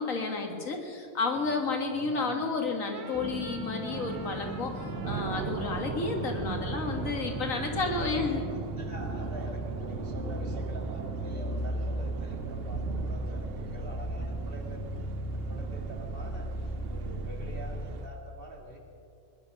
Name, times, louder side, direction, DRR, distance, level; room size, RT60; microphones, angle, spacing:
voice 1, 0.0-8.4, left 4 dB, 80° left, 3 dB, 2.1 m, -31 dB
voice 2, 1.9-2.4 7.6-14.9 15.3-18.8, right 2 dB, 45° right, 0 dB, 2.4 m, -45 dB
sound 1, 2.8-8.7, right 5 dB, 85° right, 1.8 m, -49 dB
sound 2, 3.1-17.9, right 1 dB, 10° left, 1.0 m, -36 dB
sound 3, 3.9-18.1, right 9 dB, 60° right, 0.7 m, -41 dB
21.0 x 11.0 x 6.2 m, 2.5 s
omnidirectional pair, 1.4 m